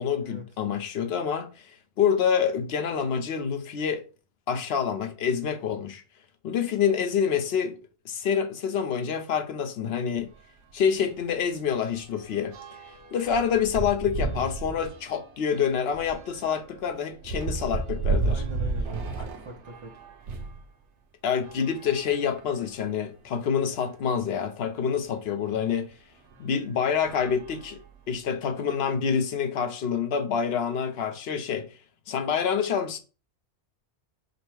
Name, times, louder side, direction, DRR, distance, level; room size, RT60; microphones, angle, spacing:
voice 1, 0.0-4.0 4.5-6.0 6.4-7.8 8.0-10.3 10.7-12.5 13.1-18.4 21.2-25.9 26.4-27.8 28.1-31.7 32.1-33.0, left 7 dB, 65° left, 0.9 m, -27 dB
sound 1, 10.2-10.3 10.7-10.9 11.1-20.6 21.3-22.7 23.4-23.5 23.7-23.8 25.5-25.6 26.3-26.5 26.9-28.2, right 3 dB, 85° right, 1.0 m, -33 dB
voice 2, 18.3-20.0, right 1 dB, 35° right, 0.5 m, -42 dB
5.2 x 2.1 x 4.6 m
omnidirectional pair, 1.2 m